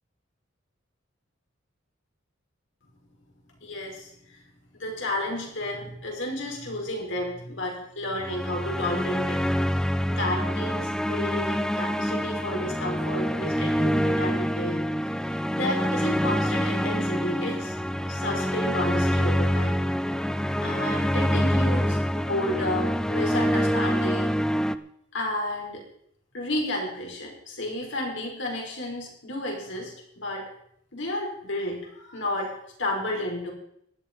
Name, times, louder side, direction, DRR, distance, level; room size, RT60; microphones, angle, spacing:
voice 1, 3.6-4.4 4.7-9.4 10.1-14.8 15.2-17.8 18.1-19.8 20.6-24.4 25.1-25.8 26.3-30.5 30.9-33.5, left 1 dB, 65° left, 0 dB, 5.3 m, -32 dB
sound 1, 8.2-24.8, equal, 5° left, 0.5 m, -26 dB
15.5 x 11.5 x 5.4 m, 0.70 s
head